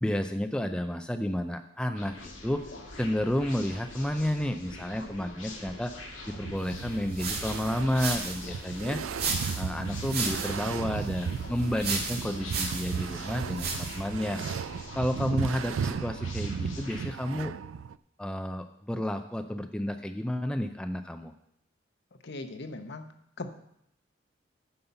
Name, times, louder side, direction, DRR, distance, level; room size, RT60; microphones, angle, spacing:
voice 1, 0.0-2.6 3.0-5.9 6.3-9.0 9.6-14.4 15.0-17.5 18.2-21.3, left 1 dB, 5° left, 6 dB, 0.4 m, -31 dB
sound 1, 1.9-17.1, left 2 dB, 90° left, 2.1 m, -44 dB
sound 2, 6.3-18.0, right 7 dB, 80° right, 0.3 m, -36 dB
sound 3, 6.8-14.1, right 4 dB, 55° right, 2.0 m, -36 dB
voice 2, 22.2-23.0 23.4-23.5, left 2 dB, 60° left, 7 dB, 0.9 m, -38 dB
9.4 x 5.6 x 6.8 m, 0.74 s
head